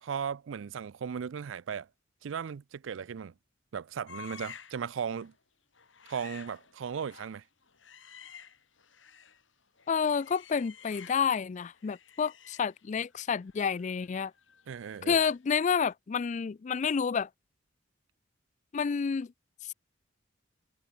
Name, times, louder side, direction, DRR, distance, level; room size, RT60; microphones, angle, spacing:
voice 1, 0.0-1.9 2.2-3.3 3.7-5.3 6.1-7.4 14.7-15.2, right 7 dB, 75° right, 0.4 m, -36 dB
sound 1, 4.1-4.9 5.1-5.4 5.7-9.4 9.8-11.4 11.7-15.5 15.8-15.9, left 7 dB, 75° left, 5.1 m, -52 dB
voice 2, 9.9-14.3 15.0-17.3 18.7-19.3, left 6 dB, 40° left, 0.3 m, -29 dB
head